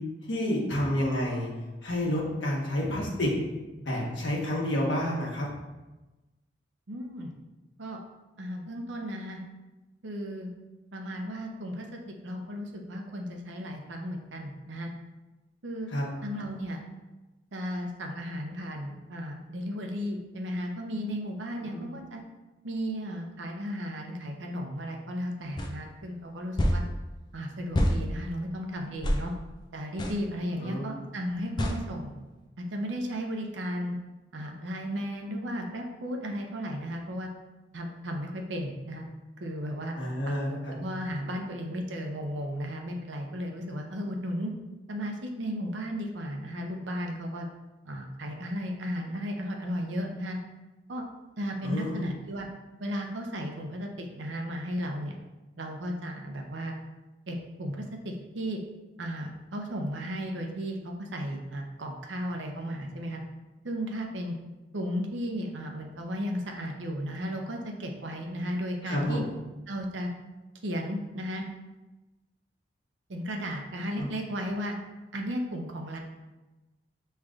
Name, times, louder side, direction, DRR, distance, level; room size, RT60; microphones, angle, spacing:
voice 1, 0.3-1.5 1.8-3.3 3.8-5.5 15.9-16.0 21.6-21.9 30.6-30.9 40.0-40.7 51.6-52.1 68.8-69.2 74.0-74.1, left 1 dB, 80° left, -4 dB, 1.2 m, -29 dB
voice 2, 6.9-7.3 7.8-8.0 8.4-9.4 10.0-10.5 10.9-11.8 12.2-14.9 15.6-15.9 16.2-16.8 17.5-22.2 22.6-26.8 27.3-29.3 29.7-32.1 32.7-34.0 34.3-37.3 37.7-39.1 39.4-39.9 40.3-44.5 44.9-47.5 47.9-50.4 50.9-51.1 51.4-52.5 52.8-55.2 55.6-56.7 57.3-58.6 59.0-63.2 63.6-64.4 64.7-69.2 69.7-70.1 70.6-71.4 73.1-74.7 75.1-76.0, equal, 80° right, 2 dB, 0.7 m, -34 dB
sound 1, 25.6-25.7 26.6-26.8 27.7-28.0 29.0-29.2 30.0-30.2 31.6-31.8, equal, 25° left, 0.4 m, -25 dB
6.3 x 3.2 x 2.4 m, 1.1 s
head